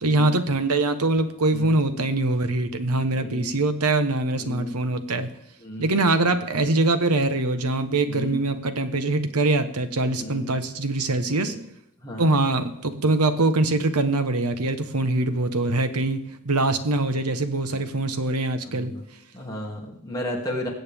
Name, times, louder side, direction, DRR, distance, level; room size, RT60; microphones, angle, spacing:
voice 1, 0.0-5.3 5.8-11.6 12.2-19.0, right 2 dB, 90° right, 9 dB, 1.1 m, -23 dB
voice 2, 3.1-3.5 4.4-4.7 5.6-5.9 8.1-8.4 10.2-10.5 11.3-11.6 12.0-12.3 17.7-17.8 18.6-19.0 19.3-20.7, left 1 dB, 15° left, -3 dB, 2.5 m, -34 dB
21.0 x 8.0 x 3.6 m, 0.83 s
head